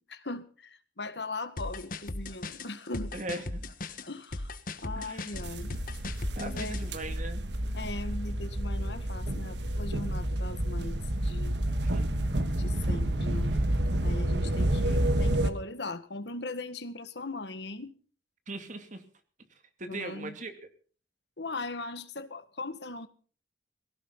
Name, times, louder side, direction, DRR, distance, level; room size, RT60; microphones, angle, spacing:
voice 1, 0.0-3.1 4.1-4.5 4.8-5.7 6.4-6.9 7.7-11.6 12.6-13.5 14.0-17.9 19.9-20.3 21.4-23.1, left 2 dB, 65° left, 11 dB, 1.8 m, -39 dB
sound 1, 1.6-6.8, left 2 dB, 50° left, 1.4 m, -38 dB
voice 2, 3.1-3.7 4.9-5.3 6.4-7.5 11.8-12.1 18.5-19.0 19.8-20.5, right 2 dB, 45° right, 7 dB, 2.6 m, -39 dB
sound 2, 5.3-15.5, right 1 dB, 70° right, 1.5 m, -29 dB
19.0 x 17.0 x 4.0 m, 0.41 s
head